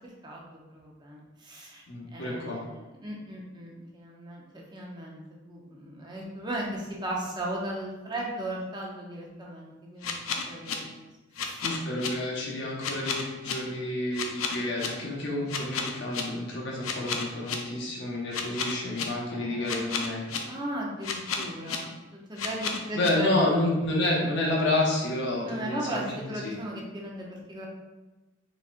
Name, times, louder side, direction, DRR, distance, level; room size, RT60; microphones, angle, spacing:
voice 1, 0.2-1.8 2.1-10.2 10.5-11.0 11.4-11.6 15.4-15.5 19.3-19.9 20.5-23.5 25.4-27.7, right 1 dB, 20° right, -2 dB, 0.6 m, -37 dB
voice 2, 1.9-2.6 11.6-20.2 22.9-26.2 26.4-26.6, left 1 dB, 60° left, -3 dB, 1.0 m, -29 dB
sound 1, 10.0-10.7 11.4-12.1 12.8-13.5 14.1-14.9 15.5-16.2 16.8-17.6 18.3-19.0 19.7-20.4 21.0-21.8 22.4-23.1, left 6 dB, 90° left, 0.5 m, -31 dB
4.0 x 3.8 x 2.5 m, 1.1 s
head